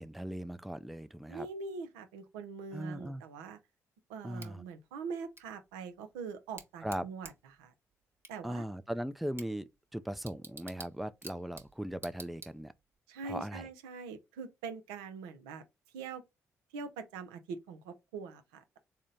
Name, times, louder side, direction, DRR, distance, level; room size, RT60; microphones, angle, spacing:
voice 1, 0.0-1.5 2.7-3.2 4.2-4.6 6.8-7.0 8.4-12.7 13.3-13.7, right 1 dB, ahead, 0.3 m, -39 dB
voice 2, 1.3-3.6 4.1-7.7 8.3-8.7 13.1-15.6 15.9-16.2 16.7-18.8, right 5 dB, 80° right, 0.5 m, -43 dB
Bicycle / Tick, 4.4-13.0, right 3 dB, 30° right, 1.0 m, -53 dB
3.8 x 2.1 x 3.7 m
hypercardioid pair, 45°, 8 cm